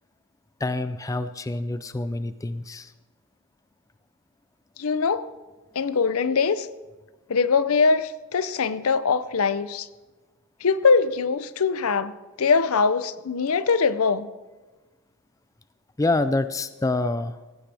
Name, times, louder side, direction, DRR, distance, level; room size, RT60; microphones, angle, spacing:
voice 1, 0.6-2.9 16.0-17.4, left 2 dB, 15° left, 0.4 m, -26 dB
voice 2, 4.8-5.3 5.7-6.7 7.3-9.9 10.6-14.3, left 5 dB, 75° left, 0.6 m, -22 dB
17.5 x 15.5 x 3.4 m
head